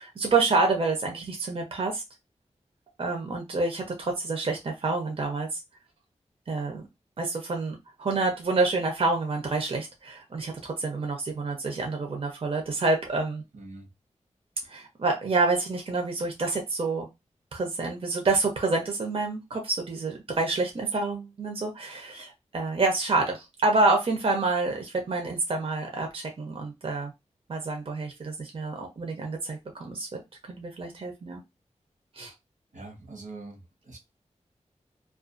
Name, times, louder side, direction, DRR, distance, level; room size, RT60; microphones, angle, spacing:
voice 1, 0.0-2.0 3.0-5.6 6.5-6.8 7.2-13.4 14.7-17.1 17.5-27.1 27.5-30.2 30.5-31.4 32.1-32.3, right 3 dB, 50° right, 0.6 m, -28 dB
voice 2, 13.5-13.9 32.7-34.0, right 3 dB, 85° right, 1.0 m, -43 dB
2.4 x 2.3 x 2.4 m
wide cardioid pair, 100°, 12 cm